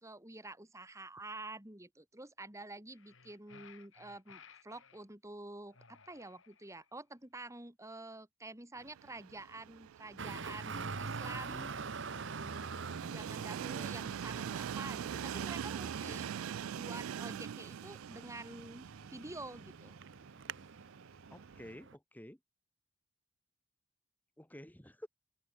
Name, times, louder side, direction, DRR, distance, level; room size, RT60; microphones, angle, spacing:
voice 1, 0.0-11.7 13.0-16.3 16.7-19.9, right 2 dB, 15° right, 2.7 m, -48 dB
sound 1, 2.9-5.0 5.7-6.9, left 6 dB, 65° left, 4.5 m, -59 dB
Train, 8.8-21.7, right 8 dB, 85° right, 0.4 m, -44 dB
Traffic noise roadway noise, 10.2-21.9, right 4 dB, 60° right, 1.0 m, -45 dB
voice 2, 16.1-16.7 21.3-22.4 24.4-25.1, left 1 dB, 10° left, 1.3 m, -52 dB
open air
head